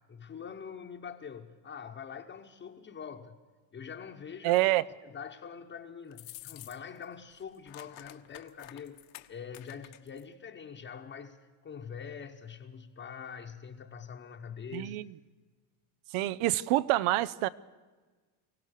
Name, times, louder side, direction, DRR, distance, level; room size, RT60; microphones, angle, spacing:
voice 1, 0.1-3.4 3.7-4.7 5.0-9.0 9.3-15.0, left 7 dB, 25° left, 1.0 m, -44 dB
voice 2, 4.4-4.9 14.7-15.1 16.1-17.5, right 16 dB, 75° right, 0.8 m, -27 dB
sound 1, 6.1-7.0 7.3-10.2, left 16 dB, 65° left, 1.2 m, -50 dB
24.5 x 16.5 x 6.6 m
cardioid pair, 135°, 50 cm